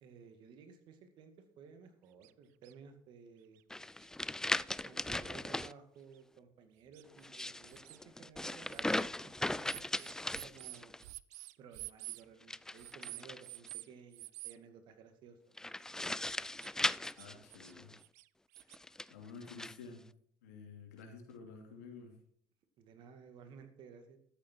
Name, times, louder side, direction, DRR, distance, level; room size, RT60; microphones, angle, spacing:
voice 1, 0.0-3.6 4.8-11.0 11.6-15.5 22.8-24.2, right 6 dB, 60° right, 7 dB, 2.2 m, -56 dB
sound 1, 2.2-2.3 2.6-2.7 3.6-3.7 4.0-4.1 4.7-4.8 5.7-5.8 6.1-6.2 6.9-8.0 8.7-9.1 9.7-12.2 12.8-13.9 14.1-14.6 16.4-16.7 17.0-17.7 18.0-18.8, right 22 dB, 80° right, 0.4 m, -49 dB
sound 2, 3.7-5.7 7.1-11.0 12.4-13.7 15.6-18.0 18.7-19.7, left 1 dB, 5° left, 0.4 m, -38 dB
voice 2, 17.2-17.9 19.1-20.1 20.4-22.1, left 4 dB, 90° left, 3 dB, 2.8 m, -51 dB
13.0 x 8.4 x 4.6 m, 0.63 s
hypercardioid pair, 75°, 9 cm